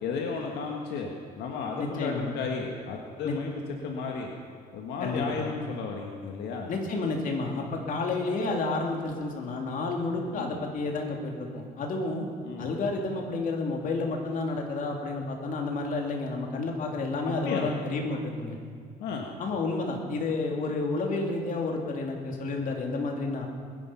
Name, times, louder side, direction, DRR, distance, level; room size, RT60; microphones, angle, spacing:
voice 1, 0.0-1.1 1.3-4.3 4.7-6.7 10.3-10.6 12.4-12.7 17.2-17.7 19.0-19.2, left 5 dB, 80° left, 1 dB, 1.7 m, -33 dB
voice 2, 1.8-2.3 3.2-3.4 5.0-5.5 6.7-12.3 12.6-18.6 19.4-23.5, left 3 dB, 55° left, 1 dB, 2.8 m, -30 dB
21.5 x 11.0 x 5.7 m, 2.1 s
cardioid pair, 110°, 17 cm